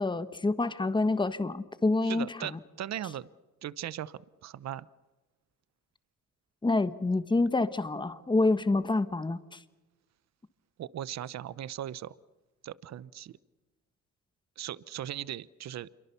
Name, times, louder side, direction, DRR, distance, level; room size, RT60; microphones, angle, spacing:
voice 1, 0.0-2.3 2.5-2.6 6.6-9.6, left 2 dB, 15° left, 12 dB, 1.4 m, -27 dB
voice 2, 2.0-3.3 3.6-4.9 10.8-12.1 12.6-13.4 14.6-15.9, right 11 dB, 60° right, 19 dB, 0.9 m, -38 dB
27.5 x 23.5 x 7.0 m, 1.1 s
cardioid pair, 90°, 30 cm